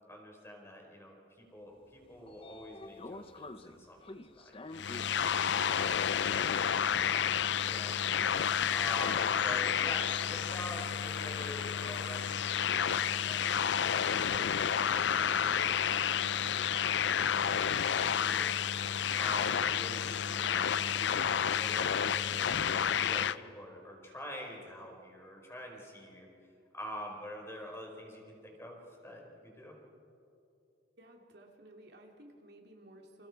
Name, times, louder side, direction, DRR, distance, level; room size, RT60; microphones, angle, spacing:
voice 1, 0.1-4.6 5.7-6.1 6.6-6.9 7.7-8.0 8.7-14.5 14.7-18.6 19.1-26.3 26.7-29.7, equal, 15° left, 0 dB, 4.5 m, -46 dB
Train / Sliding door, 1.8-12.0, left 2 dB, 30° left, 0.8 m, -52 dB
sound 1, 4.7-23.4, left 8 dB, 65° left, 0.5 m, -30 dB
voice 2, 5.5-7.2 31.0-33.3, right 1 dB, 60° right, 1 dB, 2.8 m, -56 dB
29.5 x 28.0 x 4.8 m, 2.7 s
head